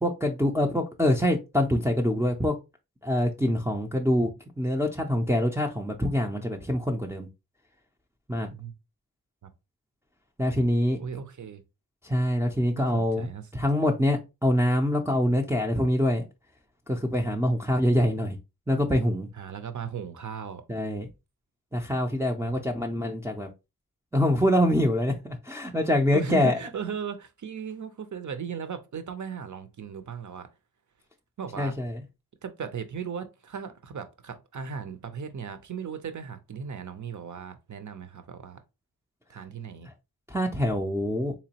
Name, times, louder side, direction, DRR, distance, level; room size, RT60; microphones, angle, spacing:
voice 1, 0.0-2.5 3.0-4.3 4.6-7.3 8.3-8.5 10.4-11.0 12.0-16.3 16.9-18.4 18.7-19.3 20.7-21.1 21.7-23.5 24.1-26.6 31.6-32.0 40.3-41.3, left 1 dB, 5° right, 0.4 m, -25 dB
voice 2, 11.0-11.6 12.8-13.5 19.3-20.6 22.4-22.5 26.1-30.5 31.4-31.7 32.4-38.6 39.3-39.9, right 7 dB, 50° right, 0.6 m, -37 dB
3.7 x 3.0 x 2.8 m
wide cardioid pair, 75°, 38 cm